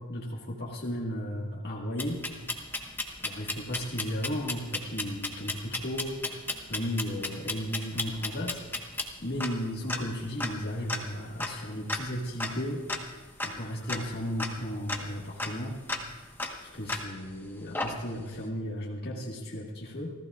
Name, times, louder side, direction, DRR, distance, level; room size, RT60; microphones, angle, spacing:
voice 1, 0.0-2.2 3.2-6.2 6.7-8.6 9.2-12.8 13.4-15.8 16.7-20.1, equal, 50° left, -4 dB, 1.8 m, -34 dB
sound 1, 2.0-17.3 17.7-18.4, left 2 dB, 10° left, 1.3 m, -36 dB
28.0 x 15.0 x 2.5 m, 1.2 s
head